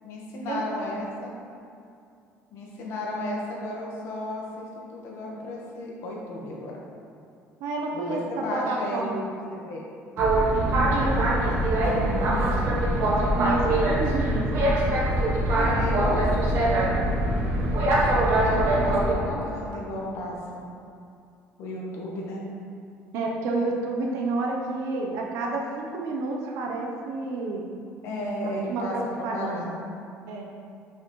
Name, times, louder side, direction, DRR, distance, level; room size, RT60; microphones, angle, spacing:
voice 1, 0.0-1.3 2.5-6.7 7.9-9.8 15.5-17.2 18.0-20.7 21.6-22.4 28.0-29.8, left 1 dB, 60° left, -3 dB, 1.2 m, -34 dB
voice 2, 7.6-8.2 8.5-9.1 10.7-12.5 13.2-14.7 23.1-27.6 28.7-29.7 30.3-30.4, right 3 dB, 75° right, 0 dB, 0.8 m, -30 dB
Boat Water vehicle, 10.2-19.1, right 1 dB, 60° right, 1.1 m, -23 dB
6.0 x 5.6 x 3.2 m, 2.5 s
cardioid pair, 165°, 5 cm